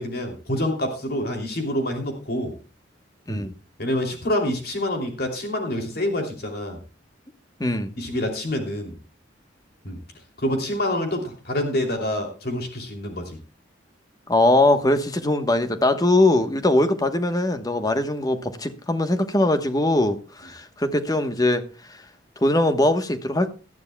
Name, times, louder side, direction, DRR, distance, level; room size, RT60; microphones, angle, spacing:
voice 1, 0.0-2.6 3.3-3.5 3.8-6.8 8.0-9.0 9.8-10.0 10.4-13.4, left 1 dB, 55° left, 2.9 m, -27 dB
voice 2, 7.6-7.9 14.3-21.6 22.4-23.5, left 1 dB, 20° left, 1.1 m, -21 dB
19.0 x 12.5 x 2.3 m
head